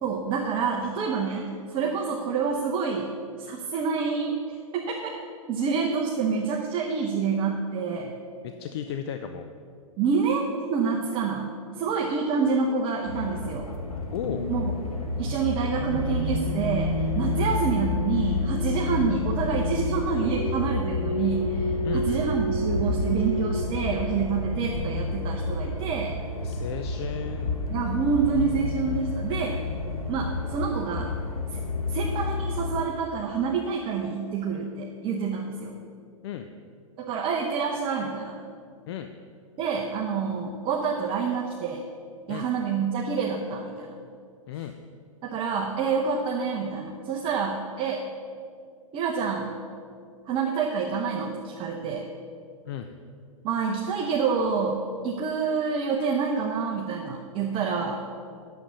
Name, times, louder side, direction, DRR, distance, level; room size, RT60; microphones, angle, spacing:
voice 1, 0.0-3.1 3.4-4.4 4.7-5.2 5.5-8.1 10.0-11.5 11.8-13.7 14.5-14.7 15.2-26.2 27.7-29.6 30.1-31.1 31.5-31.6 31.9-35.8 37.0-38.4 39.6-41.8 42.3-44.0 45.2-48.0 48.9-49.5 50.3-52.1 53.4-58.0, right 5 dB, 30° right, -1 dB, 1.0 m, -27 dB
voice 2, 8.4-9.5 14.1-14.5 17.4-17.6 21.8-22.2 26.4-27.5 36.2-36.5 38.9-39.1 42.3-42.5 44.5-44.7 52.7-52.9, left 9 dB, 50° left, 7 dB, 0.6 m, -34 dB
sound 1, 13.0-32.8, left 2 dB, 85° left, 1.4 m, -29 dB
8.9 x 7.2 x 7.0 m, 2.3 s
figure-of-eight pair, 110°, 18 cm